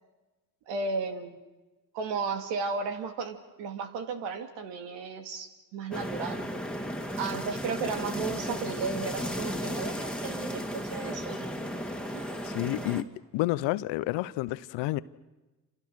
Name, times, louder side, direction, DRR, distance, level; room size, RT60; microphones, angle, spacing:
voice 1, 0.7-1.4 1.9-6.4 7.2-11.5 12.1-12.3, right 4 dB, 80° right, 2.4 m, -34 dB
sound 1, 5.9-13.0, equal, ahead, 2.6 m, -34 dB
voice 2, 12.4-15.0, left 17 dB, 80° left, 0.9 m, -30 dB
29.0 x 27.5 x 6.4 m
hypercardioid pair, 45°, 43 cm